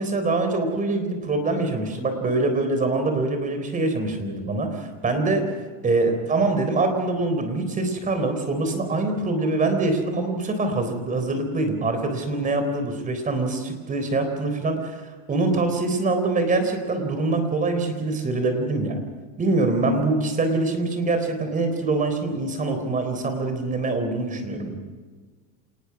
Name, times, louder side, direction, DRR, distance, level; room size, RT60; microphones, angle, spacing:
voice 1, 0.0-5.4 5.8-15.0 15.3-19.0 19.4-24.9, right 2 dB, 20° right, 6 dB, 3.9 m, -24 dB
27.0 x 19.5 x 6.0 m, 1.5 s
cardioid pair, 150°, 37 cm